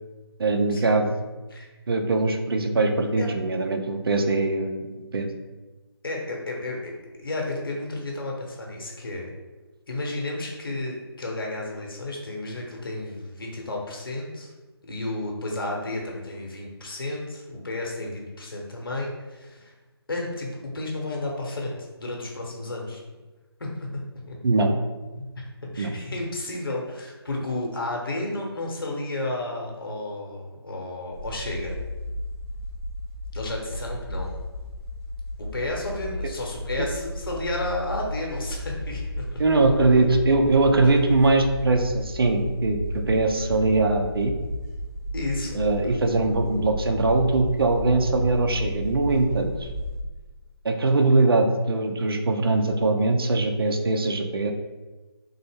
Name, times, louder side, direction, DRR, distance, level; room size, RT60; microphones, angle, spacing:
voice 1, 0.4-1.3 1.9-4.8 5.1-5.3 24.4-24.7 25.8-25.9 39.4-44.3 45.5-49.7 50.6-54.5, right 3 dB, 60° right, 5 dB, 0.5 m, -22 dB
voice 2, 6.0-6.9 7.2-9.3 9.9-14.5 14.9-19.7 20.1-20.5 20.7-23.0 23.6-23.9 24.3-24.4 25.1-25.3 25.7-31.7 33.3-34.3 35.5-39.4 40.8-40.9 43.4-43.5 45.1-45.6, left 2 dB, 55° left, -1 dB, 0.8 m, -32 dB
sound 1, 31.1-50.0, left 1 dB, 10° left, 0.4 m, -34 dB
3.4 x 2.0 x 3.5 m, 1.2 s
figure-of-eight pair, 155°, 14 cm